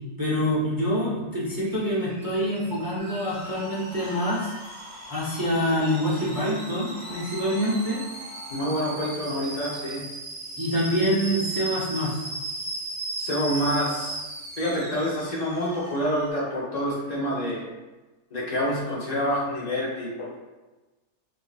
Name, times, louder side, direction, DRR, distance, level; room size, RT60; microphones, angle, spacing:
voice 1, 0.2-4.5 5.1-8.0 10.6-12.2, equal, 25° right, -8 dB, 0.5 m, -26 dB
Alarm / Boiling, 1.5-16.3, right 2 dB, 60° right, 1.1 m, -37 dB
sound 1, 3.0-8.6, left 2 dB, 15° left, 1.1 m, -43 dB
voice 2, 8.5-10.0 13.2-14.2 14.6-17.6 18.3-20.3, equal, 30° left, -5 dB, 0.8 m, -27 dB
4.6 x 2.8 x 2.5 m, 1.1 s
omnidirectional pair, 1.8 m